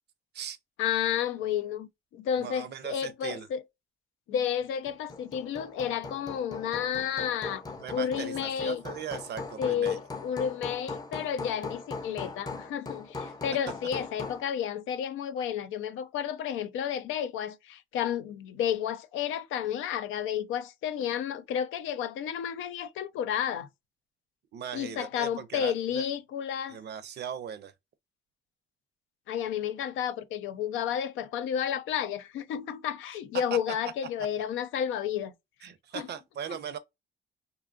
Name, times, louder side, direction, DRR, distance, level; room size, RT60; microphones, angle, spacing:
voice 1, 0.8-3.6 4.3-7.6 7.9-8.8 9.6-23.7 24.7-26.8 29.3-35.3 35.9-36.1 36.5-36.6, left 9 dB, 90° left, 0.4 m, -31 dB
voice 2, 2.4-3.5 7.8-10.0 24.5-26.0 26.7-27.7 33.5-33.8 35.6-36.8, right 8 dB, 60° right, 0.5 m, -39 dB
Hammer, 4.9-14.5, left 3 dB, 20° left, 0.6 m, -40 dB
2.7 x 2.3 x 2.4 m
cardioid pair, 90°, 20 cm